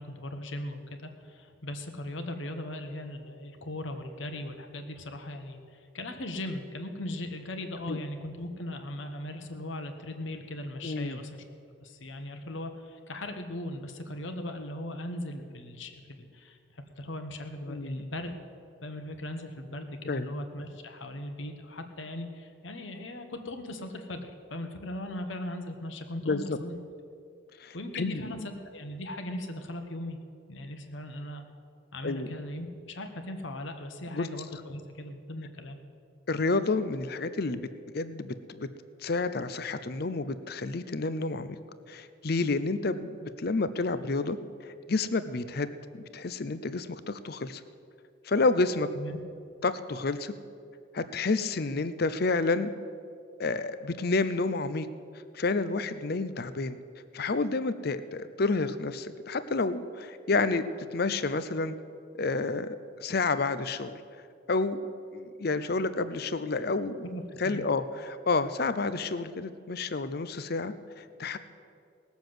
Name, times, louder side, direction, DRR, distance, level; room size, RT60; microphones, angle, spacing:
voice 1, 0.0-11.4 11.8-18.3 18.8-26.8 27.7-30.2 30.5-31.4 31.9-35.8 48.9-49.2 67.0-67.6, left 1 dB, 70° left, 6 dB, 1.3 m, -38 dB
voice 2, 10.8-11.2 17.7-18.1 20.1-20.3 26.2-26.6 27.6-28.3 32.0-32.3 34.1-34.3 36.3-37.7 37.9-38.7 39.0-41.6 41.9-44.4 44.6-45.8 46.1-47.6 48.2-48.9 49.6-50.3 50.9-52.7 53.4-54.9 55.3-56.8 57.1-61.8 62.1-64.0 64.5-64.8 65.1-67.1 67.4-71.4, left 3 dB, 50° left, 13 dB, 0.6 m, -30 dB
18.5 x 7.1 x 7.8 m, 2.4 s
head